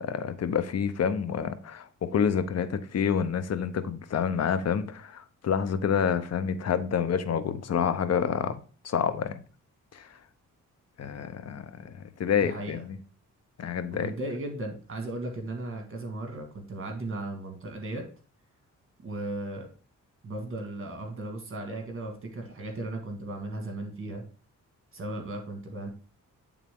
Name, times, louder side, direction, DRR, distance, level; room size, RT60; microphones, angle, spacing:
voice 1, 0.0-8.6 8.8-9.4 9.9-10.1 11.0-13.0 13.6-14.1, left 7 dB, 55° left, 0.7 m, -28 dB
voice 2, 12.4-12.8 13.9-18.0 19.0-19.7 20.2-24.2 24.9-25.9, right 2 dB, 45° right, 1.7 m, -36 dB
8.4 x 3.6 x 3.5 m
cardioid pair, 85°, 31 cm